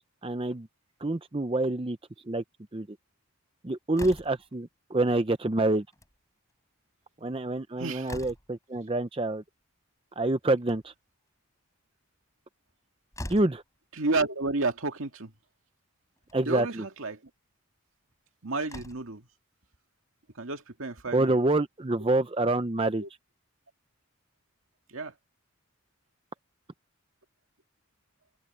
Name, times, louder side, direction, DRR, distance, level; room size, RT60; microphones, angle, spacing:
voice 1, 0.2-0.7 1.0-2.0 2.3-2.4 2.7-2.9 3.6-5.8 7.2-9.4 10.2-10.9 13.3-13.6 16.3-16.8 21.1-23.0, right 2 dB, 25° right, 0.6 m, -27 dB
Slam, 3.9-4.5 5.8-6.2 6.5-6.6 6.9-7.0 7.5-8.7 10.4-11.1 12.7-12.8 13.1-13.6 14.8-14.9 15.3-15.4 16.2-16.4 18.1-18.2 18.6-19.2, left 1 dB, 15° left, 7.3 m, -43 dB
voice 2, 7.8-8.1 14.0-15.3 16.4-17.2 18.4-19.3 20.4-21.4 23.0-23.1 24.9-25.1, right 3 dB, 75° right, 2.0 m, -31 dB
head